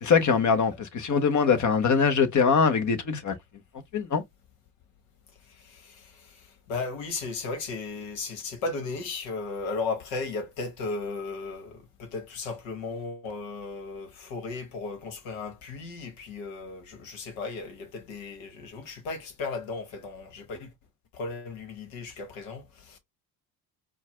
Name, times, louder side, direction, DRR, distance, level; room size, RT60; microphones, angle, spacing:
voice 1, 0.0-3.4 3.9-4.2, left 6 dB, 35° left, 1.1 m, -22 dB
voice 2, 5.5-20.7 21.1-23.0, left 3 dB, 65° left, 1.5 m, -36 dB
4.5 x 2.4 x 3.3 m
hypercardioid pair, 55°, 50 cm